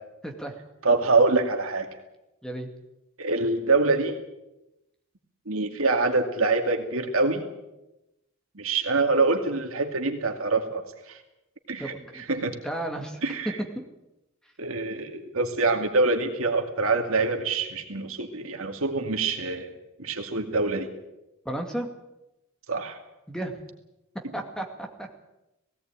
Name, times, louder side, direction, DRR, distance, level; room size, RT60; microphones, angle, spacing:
voice 1, 0.8-1.9 3.2-4.2 5.5-7.4 8.5-10.8 11.1-11.2 11.7-12.6 13.2-13.6 14.6-19.7 20.0-20.9 22.7-23.0, right 3 dB, 70° right, 4 dB, 2.4 m, -25 dB
voice 2, 11.8-12.2 12.6-13.2 21.4-21.9 23.3-23.6 24.3-25.1, right 1 dB, 5° left, 3 dB, 2.3 m, -33 dB
18.0 x 17.5 x 9.1 m, 0.94 s
head